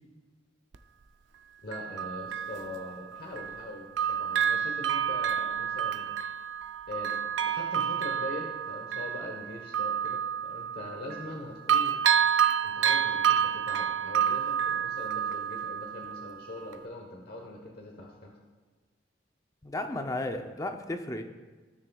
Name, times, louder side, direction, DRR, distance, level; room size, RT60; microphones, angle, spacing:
Bell, 0.7-0.8 1.7-3.7 4.0-11.4 11.7-16.3 16.7-16.8, right 8 dB, 75° right, 0.5 m, -29 dB
voice 1, 1.6-6.2 6.9-12.0 12.6-18.3, left 1 dB, 55° left, 0 dB, 1.0 m, -42 dB
voice 2, 19.6-21.2, left 1 dB, 20° left, 6 dB, 0.5 m, -34 dB
15.5 x 6.5 x 2.3 m, 1.4 s
head